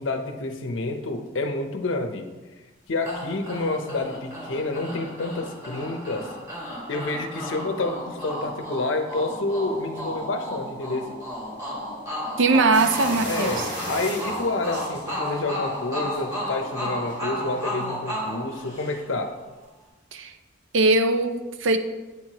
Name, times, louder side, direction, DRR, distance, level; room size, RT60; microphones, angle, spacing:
voice 1, 0.0-2.3 2.9-6.3 6.9-11.2 12.5-12.8 13.2-19.3, left 2 dB, 80° left, 6 dB, 0.6 m, -29 dB
sound 1, 3.0-19.2, equal, 15° right, 1.8 m, -33 dB
voice 2, 12.4-13.6 20.1-20.3 20.7-21.8, right 3 dB, 75° right, 8 dB, 0.5 m, -21 dB
sound 2, 12.7-15.6 16.0-16.4 17.1-17.2 17.6-17.7, right 1 dB, 60° right, 1.4 m, -36 dB
8.2 x 4.6 x 2.9 m, 1.2 s
head